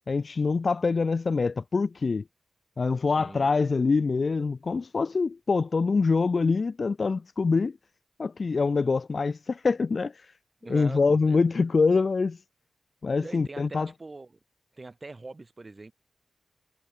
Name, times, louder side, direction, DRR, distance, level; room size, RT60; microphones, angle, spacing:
voice 1, 0.1-2.2 2.8-7.8 8.2-10.1 10.7-12.4 13.0-13.9, left 4 dB, 40° left, 0.4 m, -25 dB
voice 2, 3.1-3.5 10.6-11.7 13.2-14.4 14.7-15.9, right 3 dB, 25° right, 5.3 m, -43 dB
wide cardioid pair, 145°, 0 cm